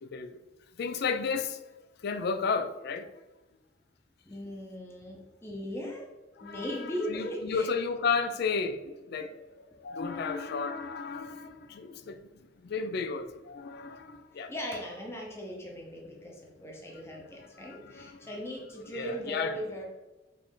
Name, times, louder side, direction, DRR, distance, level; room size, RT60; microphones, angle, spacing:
voice 1, 0.0-0.4 0.8-1.6 2.0-3.1 6.4-12.2 12.6-14.5 17.6-18.3 18.7-19.6, left 5 dB, 60° left, 0.4 m, -33 dB
voice 2, 4.2-6.1 6.4-7.7 14.3-19.8, equal, 15° left, 0.7 m, -38 dB
5.2 x 2.6 x 3.6 m
head